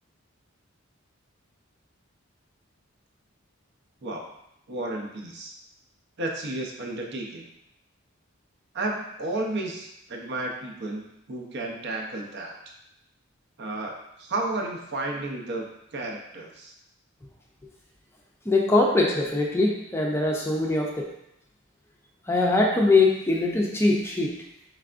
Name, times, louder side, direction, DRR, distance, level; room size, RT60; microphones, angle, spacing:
voice 1, 4.7-5.5 6.2-7.5 8.7-12.5 13.6-15.6 15.9-16.7, right 2 dB, 55° right, 1 dB, 0.7 m, -32 dB
voice 2, 18.5-21.1 22.3-24.3, left 2 dB, 10° left, -1 dB, 0.5 m, -22 dB
4.7 x 3.3 x 2.5 m, 0.79 s
head